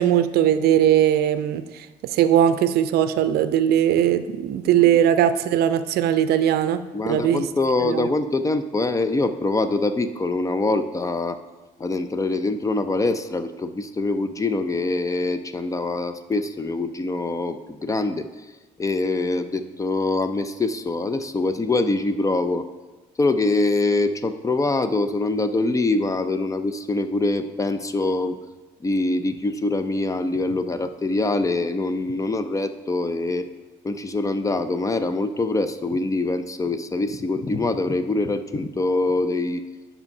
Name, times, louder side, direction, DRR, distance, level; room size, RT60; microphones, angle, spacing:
voice 1, 0.0-1.6 2.1-6.8 7.0-7.4 7.9-8.1, right 10 dB, 70° right, 12 dB, 0.5 m, -19 dB
voice 2, 6.9-11.4 11.8-18.3 18.8-22.6 23.2-28.4 28.8-33.5 33.8-39.6, left 2 dB, 20° left, 11 dB, 0.4 m, -24 dB
7.1 x 5.5 x 5.4 m, 1.2 s
cardioid pair, 110°, 17 cm